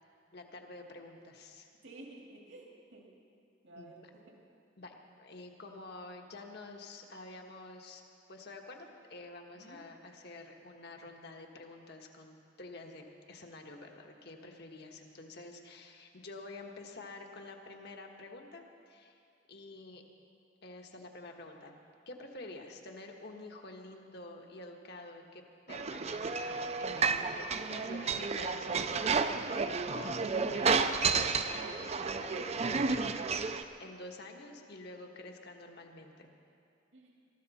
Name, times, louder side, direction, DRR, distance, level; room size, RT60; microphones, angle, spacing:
voice 1, 0.3-1.7 3.7-3.9 4.8-8.0 8.3-19.2 19.5-20.0 20.6-33.1 33.5-36.3, left 2 dB, 60° left, 2 dB, 1.4 m, -49 dB
voice 2, 1.8-3.1 3.6-4.4 9.5-9.8 36.9-37.2, right 2 dB, 75° right, -1 dB, 2.2 m, -52 dB
sound 1, 25.7-33.6, right 4 dB, 35° right, 0.5 m, -31 dB
21.0 x 13.5 x 4.2 m, 2.5 s
head